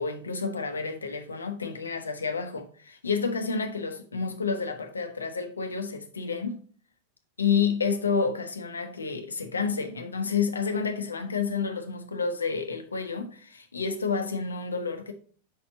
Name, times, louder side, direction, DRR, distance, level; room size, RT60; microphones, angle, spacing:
voice 1, 0.0-6.6 7.4-15.1, left 5 dB, 75° left, 0.8 m, -29 dB
5.3 x 4.3 x 4.1 m
figure-of-eight pair, 90°, 0 cm